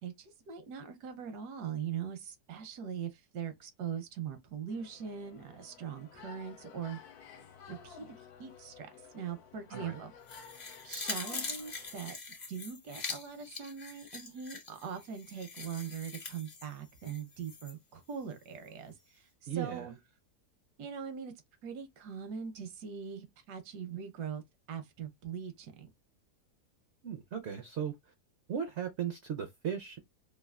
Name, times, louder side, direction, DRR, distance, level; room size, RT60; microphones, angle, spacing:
voice 1, 0.0-7.0 7.7-8.9 9.1-10.1 10.8-12.2 12.5-19.9 20.8-21.3 21.6-24.4 24.7-25.9, right 7 dB, 85° right, 1.3 m, -41 dB
sound 1, 4.7-12.0, left 6 dB, 75° left, 1.1 m, -53 dB
sound 2, 10.3-17.7 18.1-18.2, left 4 dB, 40° left, 0.6 m, -43 dB
voice 2, 19.5-19.9 27.0-27.9 28.5-30.0, right 8 dB, 65° right, 0.7 m, -36 dB
3.3 x 2.4 x 2.3 m
omnidirectional pair, 1.7 m